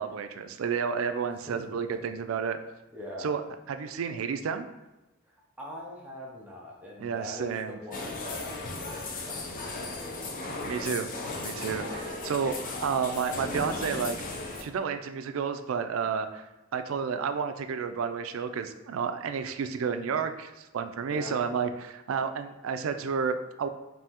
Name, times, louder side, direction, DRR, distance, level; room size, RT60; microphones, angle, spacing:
voice 1, 0.0-2.6 3.2-3.4 3.7-4.6 7.0-7.8 10.6-11.1 11.4-14.2 14.6-16.5 16.7-23.7, right 6 dB, 75° right, 9 dB, 0.3 m, -31 dB
voice 2, 1.5-1.9 2.9-3.3 5.6-10.3 21.1-21.4, left 1 dB, 10° right, -4 dB, 0.5 m, -42 dB
sound 1, 7.9-14.6, left 2 dB, 40° left, 0.6 m, -36 dB
5.4 x 2.6 x 2.9 m, 1.0 s
head